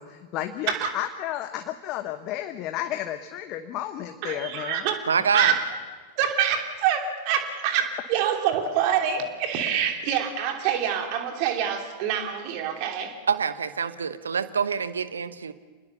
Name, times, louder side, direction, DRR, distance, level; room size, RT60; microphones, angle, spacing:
voice 1, 0.0-4.9, left 12 dB, 40° left, 8 dB, 1.1 m, -32 dB
voice 2, 4.2-5.0 5.3-5.6 6.2-13.2, right 8 dB, 45° right, 4 dB, 2.9 m, -26 dB
voice 3, 5.1-5.5 13.3-15.5, right 6 dB, 70° right, 14 dB, 1.0 m, -26 dB
27.5 x 20.5 x 7.0 m, 1.4 s
figure-of-eight pair, 90°, 0 cm